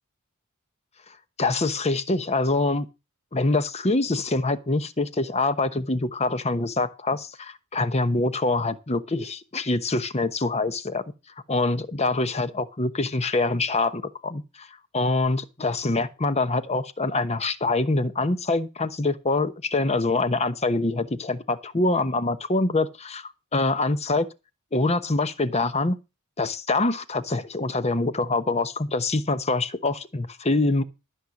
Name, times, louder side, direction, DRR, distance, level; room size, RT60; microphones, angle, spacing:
voice 1, 1.4-2.9 3.3-11.0 11.5-14.7 14.9-24.3 24.7-26.0 26.4-30.8, left 2 dB, 30° left, 1.0 m, -25 dB
13.5 x 6.5 x 7.2 m
head